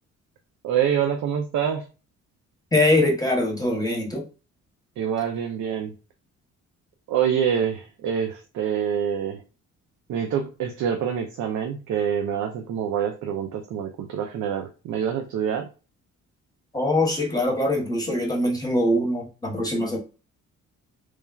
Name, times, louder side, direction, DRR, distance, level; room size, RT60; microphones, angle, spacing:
voice 1, 0.6-1.8 5.0-5.9 7.1-9.4 10.1-15.7, right 8 dB, 70° right, 3 dB, 0.5 m, -26 dB
voice 2, 2.7-4.2 16.7-20.0, left 1 dB, 10° left, 0 dB, 0.9 m, -23 dB
3.1 x 2.2 x 2.3 m, 0.33 s
cardioid pair, 90°, 30 cm